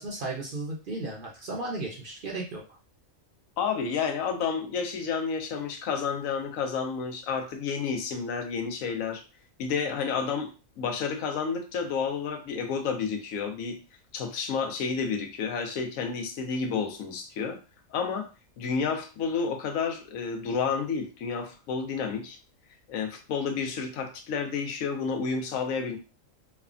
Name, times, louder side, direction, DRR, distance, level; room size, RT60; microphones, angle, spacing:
voice 1, 0.0-2.8, right 2 dB, 55° right, -2 dB, 0.7 m, -35 dB
voice 2, 3.6-9.2 9.6-13.8 14.1-17.6 17.9-18.3 18.6-22.4 22.9-26.0, left 5 dB, 80° left, 6 dB, 1.0 m, -30 dB
3.2 x 2.1 x 2.4 m, 0.31 s
omnidirectional pair, 1.4 m